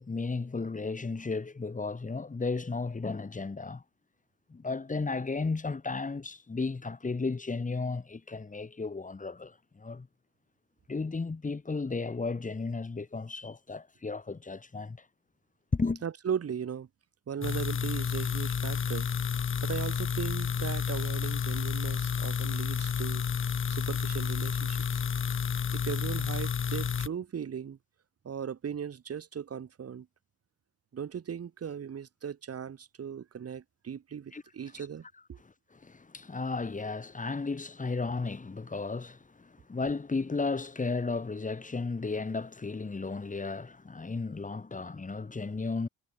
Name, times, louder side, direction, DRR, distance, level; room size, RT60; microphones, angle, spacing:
voice 1, 0.0-3.8 4.5-10.1 10.9-15.0 15.7-16.0 34.3-34.4 34.8-34.9 35.8-45.9, left 4 dB, 25° left, 5.6 m, -34 dB
voice 2, 16.0-16.9 17.3-19.1 19.6-23.2 23.7-25.0 25.7-27.8 28.2-30.1 30.9-35.4, right 7 dB, 50° right, 7.2 m, -38 dB
sound 1, 17.4-27.1, left 7 dB, 40° left, 2.1 m, -30 dB
cardioid pair, 90°, 30 cm